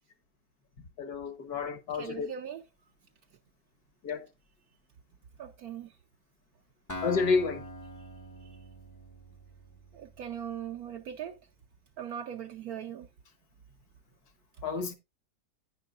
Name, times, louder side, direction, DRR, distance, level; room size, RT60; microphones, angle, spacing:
voice 1, 1.0-2.3 4.0-4.3 7.0-7.6 14.6-14.9, left 4 dB, 70° left, 1.7 m, -30 dB
voice 2, 1.9-2.6 5.4-5.9 9.9-11.4 12.0-13.1, right 9 dB, 70° right, 1.1 m, -39 dB
Acoustic guitar, 6.9-10.7, equal, 20° left, 0.5 m, -44 dB
10.5 x 9.5 x 2.4 m
omnidirectional pair, 1.8 m